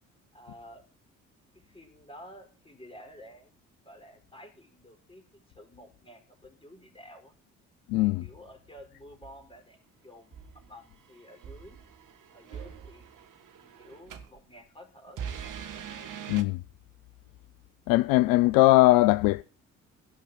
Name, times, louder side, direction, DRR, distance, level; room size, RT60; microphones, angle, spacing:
voice 1, 0.3-0.8 1.5-3.5 3.8-7.3 7.9-9.8 10.0-11.8 12.3-13.1 13.6-15.7, equal, 15° left, 4.8 m, -51 dB
voice 2, 7.9-8.3 16.3-16.6 17.9-19.4, left 19 dB, 60° left, 0.5 m, -20 dB
sound 1, 8.2-8.5 9.2-9.5 10.3-14.4 15.1-16.4, right 8 dB, 50° right, 1.6 m, -43 dB
16.5 x 5.9 x 7.4 m
figure-of-eight pair, 45°, 40 cm